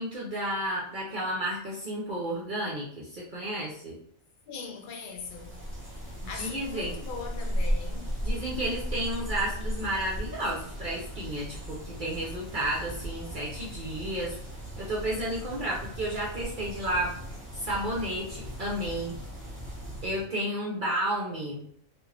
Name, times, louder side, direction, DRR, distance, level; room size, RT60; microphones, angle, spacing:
voice 1, 0.0-3.9 6.2-6.9 8.2-14.4 14.8-17.1 17.5-19.1 20.0-21.6, right 1 dB, 50° right, 0.6 m, -32 dB
voice 2, 4.5-5.7 6.2-8.2, left 5 dB, 70° left, 0.4 m, -40 dB
sound 1, 5.1-20.3, equal, 10° right, 0.6 m, -36 dB
2.4 x 2.4 x 3.3 m
omnidirectional pair, 1.5 m